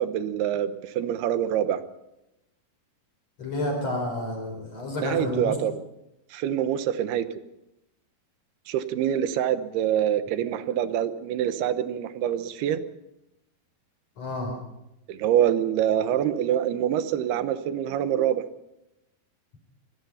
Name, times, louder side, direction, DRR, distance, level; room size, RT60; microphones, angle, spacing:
voice 1, 0.0-1.8 5.0-5.7 6.3-7.2 8.7-12.8 15.1-18.4, right 10 dB, 90° right, 12 dB, 3.1 m, -25 dB
voice 2, 3.4-5.6 14.2-14.5, left 1 dB, 40° left, 1 dB, 5.9 m, -30 dB
25.5 x 18.5 x 5.7 m, 0.90 s
omnidirectional pair, 4.4 m